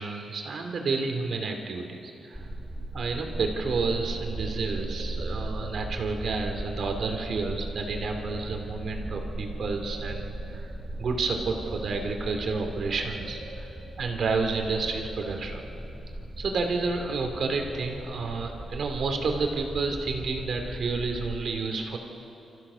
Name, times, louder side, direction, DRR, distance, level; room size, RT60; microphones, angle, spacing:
voice 1, 0.0-2.5 2.9-10.7 11.0-13.7 14.0-15.7 16.4-22.0, right 4 dB, 60° right, 4 dB, 2.6 m, -30 dB
sound 1, 2.3-21.4, right 1 dB, 5° right, 2.5 m, -38 dB
sound 2, 4.2-6.1 7.5-8.9 9.2-10.6 11.0-12.3 12.7-14.0 14.4-15.8, right 1 dB, 80° left, 6.0 m, -46 dB
29.0 x 14.5 x 6.9 m, 2.9 s
wide cardioid pair, 130°, 0 cm